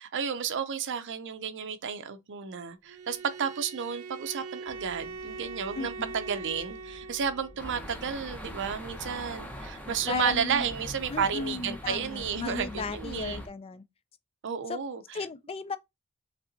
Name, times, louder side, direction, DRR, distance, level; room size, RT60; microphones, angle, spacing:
voice 1, 0.0-13.4 14.4-15.2, right 7 dB, 55° right, 0.6 m, -32 dB
Bowed string instrument, 2.8-7.6, right 4 dB, 90° right, 0.7 m, -42 dB
sound 1, 4.7-12.5, left 1 dB, 45° left, 1.1 m, -54 dB
voice 2, 5.7-6.1 10.1-10.7 11.1-13.8 14.7-14.8 15.1-15.8, left 4 dB, 25° left, 0.3 m, -35 dB
sound 2, 7.6-13.5, equal, 5° left, 0.9 m, -42 dB
5.6 x 3.3 x 2.6 m
head